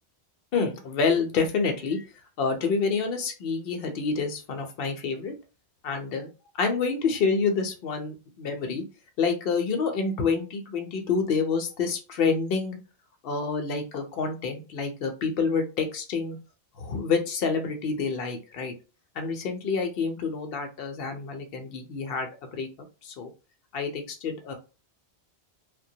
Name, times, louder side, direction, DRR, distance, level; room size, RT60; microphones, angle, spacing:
voice 1, 0.5-2.0 2.4-5.3 5.8-6.3 6.6-8.8 9.2-12.8 13.2-16.4 16.7-18.7 19.1-22.7 23.0-23.3 23.7-24.5, left 5 dB, 60° left, 5 dB, 0.8 m, -28 dB
2.2 x 2.2 x 2.6 m, 0.32 s
omnidirectional pair, 1.1 m